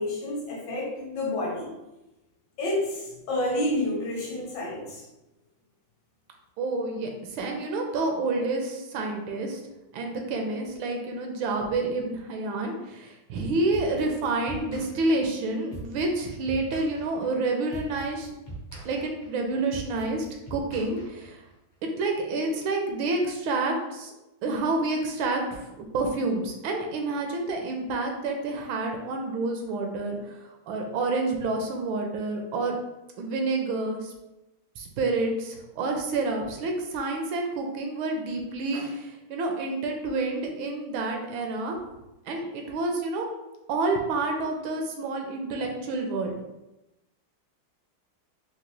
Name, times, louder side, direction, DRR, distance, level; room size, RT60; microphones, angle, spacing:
voice 1, 0.0-1.7 2.6-5.0, left 1 dB, 65° left, -2 dB, 1.3 m, -29 dB
voice 2, 6.6-9.6 9.9-18.3 18.8-20.3 20.5-21.4 22.0-24.1 24.4-30.4 30.7-32.8 33.2-34.1 34.8-41.8 42.3-43.3 43.7-46.3, right 3 dB, 80° right, 3 dB, 1.3 m, -29 dB
sound 1, 13.7-21.5, right 2 dB, 45° left, 0.6 m, -42 dB
4.0 x 2.4 x 3.0 m, 0.97 s
omnidirectional pair, 2.2 m